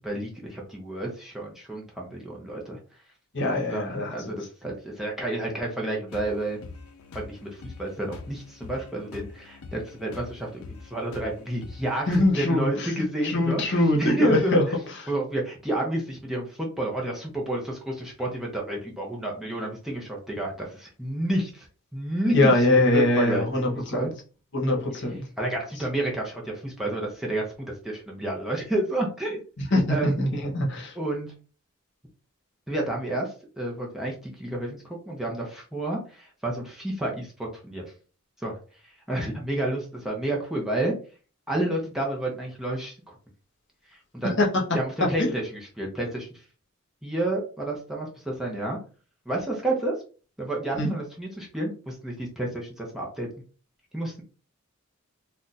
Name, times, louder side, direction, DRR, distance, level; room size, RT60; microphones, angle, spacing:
voice 1, 0.0-2.8 3.7-6.6 7.1-14.6 15.1-22.5 22.9-23.4 23.7-24.1 25.4-29.4 29.9-30.2 31.0-31.3 32.7-37.8 38.4-38.6 38.8-40.9 41.5-43.2 43.9-44.4 44.7-46.4 47.0-48.8 49.3-49.9 50.4-53.3 53.9-54.2, right 1 dB, ahead, -2 dB, 0.6 m, -30 dB
voice 2, 3.3-4.5 12.1-12.9 13.2-14.6 15.0-15.1 22.3-24.1 24.5-25.2 25.8-25.9 29.7-31.0 44.2-44.5 45.2-45.3 50.7-50.9, left 1 dB, 55° left, 0 dB, 0.9 m, -23 dB
sound 1, 6.1-12.3, left 4 dB, 75° left, 0.5 m, -44 dB
2.5 x 2.2 x 3.9 m, 0.38 s
head